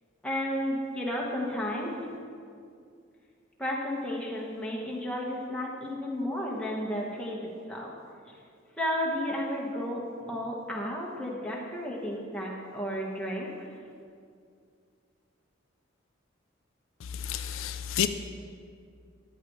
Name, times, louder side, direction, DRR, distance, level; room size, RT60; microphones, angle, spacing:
voice 1, 0.2-1.9 3.6-7.9 8.8-10.0 10.3-13.7, equal, 5° left, -4 dB, 1.4 m, -32 dB
voice 2, 17.2-18.1, left 9 dB, 75° left, 9 dB, 0.4 m, -29 dB
13.5 x 10.0 x 3.2 m, 2.3 s
head